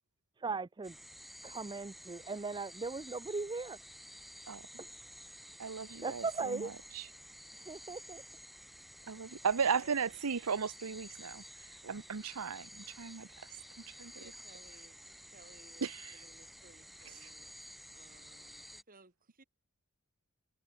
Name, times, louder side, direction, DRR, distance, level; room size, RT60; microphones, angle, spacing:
voice 1, 0.4-0.9 1.4-3.8 6.0-6.7 7.7-8.2, right 4 dB, 20° right, 0.4 m, -38 dB
sound 1, 0.8-18.8, equal, ahead, 1.9 m, -52 dB
voice 2, 5.6-7.1 9.1-11.4 11.8-13.3 13.9-14.1 15.8-16.2 17.2-17.3, right 6 dB, 90° right, 0.8 m, -36 dB
voice 3, 9.7-10.2 14.1-15.0 15.3-17.6 17.9-19.4, right 3 dB, 40° right, 3.5 m, -61 dB
head